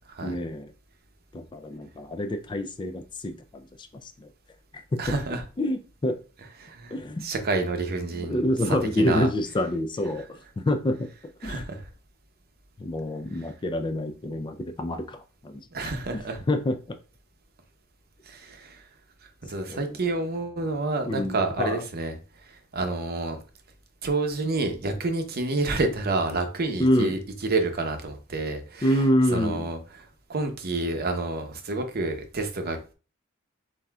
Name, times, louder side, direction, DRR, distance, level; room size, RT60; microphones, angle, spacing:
voice 1, 0.2-0.7 1.3-4.3 4.9-5.0 5.6-6.2 6.9-7.2 8.1-11.1 11.4-11.6 12.8-17.0 19.7-20.0 21.0-21.8 26.8-27.1 28.8-29.7, left 1 dB, 20° left, 0.4 m, -27 dB
voice 2, 5.0-5.4 6.6-6.9 7.2-8.5 9.0-9.3 11.4-11.9 15.7-16.4 18.3-18.8 19.4-22.1 22.7-23.4 24.0-28.9 29.3-29.8 30.3-32.8, right 3 dB, 50° right, 0.7 m, -28 dB
7.3 x 2.7 x 2.3 m
head